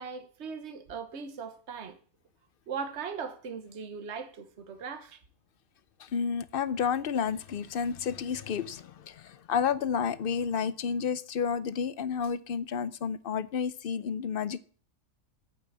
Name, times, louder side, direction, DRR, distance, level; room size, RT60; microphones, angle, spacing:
voice 1, 0.0-2.0 2.7-5.2, right 6 dB, 55° right, 1.4 m, -39 dB
voice 2, 6.0-14.6, left 7 dB, 55° left, 0.7 m, -31 dB
8.8 x 7.6 x 7.3 m
omnidirectional pair, 1.4 m